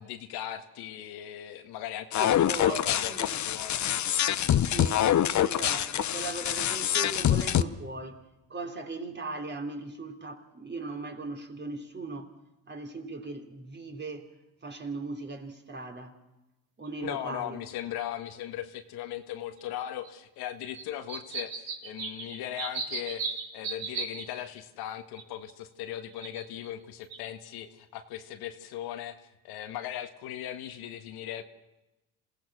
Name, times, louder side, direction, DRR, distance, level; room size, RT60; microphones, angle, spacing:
voice 1, 0.0-4.0 17.0-23.3 23.5-29.2 29.4-31.4, left 11 dB, 75° left, 1.8 m, -38 dB
sound 1, 2.1-7.6, left 11 dB, 50° left, 1.0 m, -25 dB
voice 2, 2.2-3.4 4.7-5.0 5.4-8.2 8.5-12.3 12.7-14.3 14.6-16.2 16.8-17.6, right 3 dB, 30° right, 3.6 m, -38 dB
sound 2, 16.9-17.0 18.4-18.5 19.6-19.7 20.0-20.1 20.7-24.2 25.2-25.5 26.1-26.7 27.1-27.2, right 5 dB, 65° right, 5.2 m, -36 dB
27.5 x 17.0 x 6.3 m
supercardioid pair, 85°, 38 cm